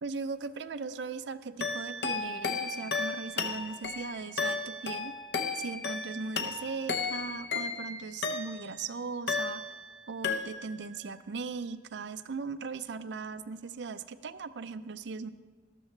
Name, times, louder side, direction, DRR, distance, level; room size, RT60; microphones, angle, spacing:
voice 1, 0.0-5.1 5.5-9.7 10.1-15.3, right 4 dB, 70° right, 12 dB, 0.5 m, -38 dB
sound 1, 1.6-8.8 9.3-10.0 10.2-10.9, left 4 dB, 60° left, 0.7 m, -34 dB
13.0 x 13.0 x 3.2 m, 1.5 s
head